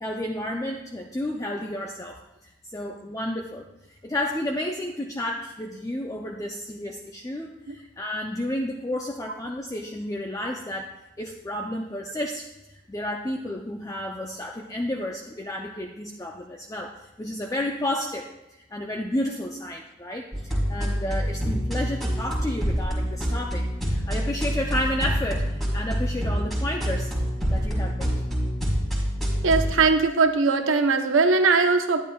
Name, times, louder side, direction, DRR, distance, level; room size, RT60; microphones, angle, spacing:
voice 1, 0.0-10.9 11.2-27.1 27.5-28.2, left 1 dB, 15° left, 1 dB, 0.4 m, -31 dB
sound 1, 20.3-29.7, equal, ahead, 1.9 m, -26 dB
voice 2, 29.4-32.0, right 4 dB, 80° right, 7 dB, 0.7 m, -20 dB
10.5 x 10.0 x 2.3 m, 0.95 s
head